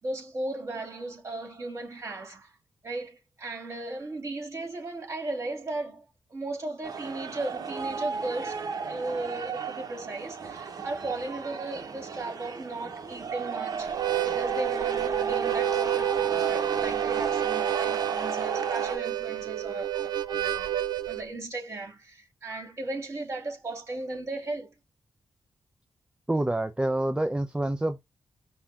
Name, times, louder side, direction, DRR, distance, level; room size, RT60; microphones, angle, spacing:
voice 1, 0.0-2.5 2.8-6.0 6.3-20.7 21.1-24.7, right 2 dB, 40° right, 3.0 m, -36 dB
sound 1, 6.8-19.0, right 5 dB, 60° right, 1.1 m, -34 dB
Harmonica, 13.9-21.2, right 11 dB, 75° right, 0.4 m, -29 dB
voice 2, 26.3-28.0, right 1 dB, 15° right, 0.5 m, -27 dB
5.5 x 2.4 x 3.6 m
cardioid pair, 100°, 7 cm